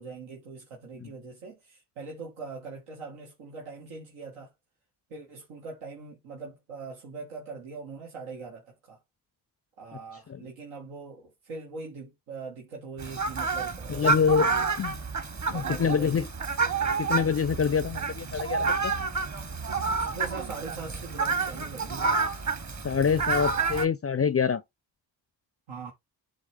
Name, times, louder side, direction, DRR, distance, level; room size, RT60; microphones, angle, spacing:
voice 1, 0.0-4.5 5.1-9.0 9.8-14.7 15.5-16.3 16.7-16.8 19.9-22.1 25.7-25.9, right 4 dB, 80° right, 1.7 m, -42 dB
Fowl, 13.0-23.8, right 4 dB, 35° right, 1.3 m, -29 dB
voice 2, 13.9-14.5 14.8-15.0 15.5-16.3 17.0-18.9 22.8-24.6, left 6 dB, 30° left, 0.5 m, -26 dB
10.5 x 3.5 x 3.4 m
hypercardioid pair, 40°, 49 cm